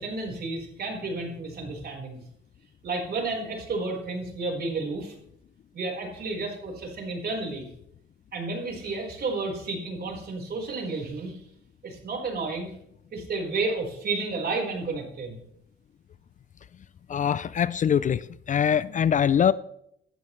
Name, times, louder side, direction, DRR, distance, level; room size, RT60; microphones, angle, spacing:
voice 1, 0.0-2.2 2.8-5.1 5.7-7.7 8.3-11.4 11.8-12.8 13.1-15.4, right 3 dB, 55° right, 4.3 m, -31 dB
voice 2, 17.1-19.5, left 8 dB, 40° left, 0.4 m, -23 dB
15.0 x 12.0 x 3.2 m
cardioid pair, 90°, 20 cm